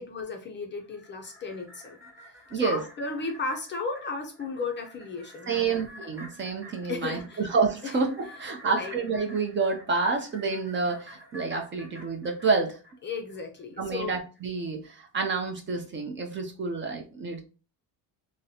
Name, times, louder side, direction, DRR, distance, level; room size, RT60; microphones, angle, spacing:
voice 1, 0.0-2.0 2.5-5.8 6.9-7.4 7.8-8.0 8.6-8.9 13.0-14.2, left 4 dB, 30° left, 3 dB, 0.4 m, -34 dB
sound 1, 0.8-13.4 13.7-13.8, equal, 5° right, 1.1 m, -49 dB
voice 2, 2.5-2.8 5.5-12.8 13.8-17.4, right 4 dB, 30° right, 3 dB, 0.5 m, -28 dB
3.8 x 2.1 x 2.7 m, 0.34 s
cardioid pair, 140°, 40 cm